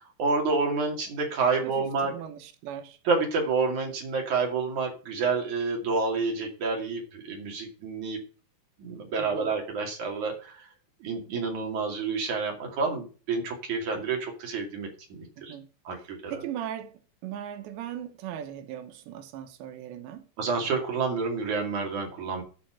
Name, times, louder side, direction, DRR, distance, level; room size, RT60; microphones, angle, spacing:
voice 1, 0.2-2.1 3.1-8.2 8.8-10.6 11.0-15.6 15.9-16.4 20.4-22.4, right 4 dB, 50° right, 3.5 m, -29 dB
voice 2, 1.6-3.0 9.2-9.5 15.4-15.7 16.3-20.3, right 10 dB, 90° right, 3.4 m, -39 dB
12.0 x 5.8 x 5.8 m
omnidirectional pair, 4.9 m